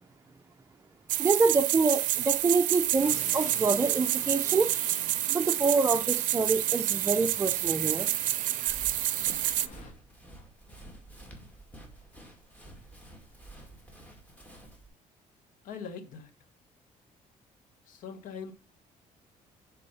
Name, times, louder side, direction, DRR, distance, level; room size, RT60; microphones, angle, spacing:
sound 1, 1.1-9.7, right 14 dB, 75° right, 0.5 m, -28 dB
voice 1, 1.2-4.7 5.3-8.1, right 4 dB, 20° right, 0.5 m, -26 dB
sound 2, 3.0-9.9, left 4 dB, 60° left, 1.6 m, -49 dB
Run, 8.7-14.9, right 1 dB, 10° left, 2.2 m, -49 dB
voice 2, 15.6-16.3 17.9-18.5, left 6 dB, 75° left, 1.2 m, -41 dB
6.7 x 4.2 x 5.5 m
cardioid pair, 105°, 14 cm